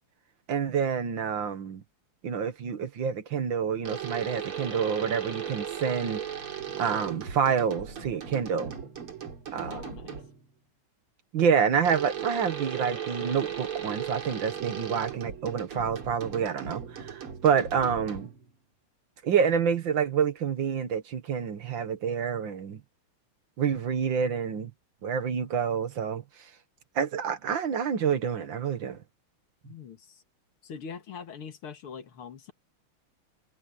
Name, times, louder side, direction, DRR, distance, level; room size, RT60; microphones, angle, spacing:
voice 1, 0.5-1.8 2.2-6.2 6.8-8.8 9.5-9.9 11.3-18.3 19.2-22.8 23.6-24.7 25.0-26.2 27.0-29.0, right 7 dB, 65° right, 2.0 m, -28 dB
sound 1, 3.8-10.5 11.8-18.5, right 8 dB, 80° right, 3.9 m, -37 dB
voice 2, 9.7-10.2 29.6-30.2 30.6-32.5, left 6 dB, 80° left, 2.6 m, -42 dB
omnidirectional pair, 2.4 m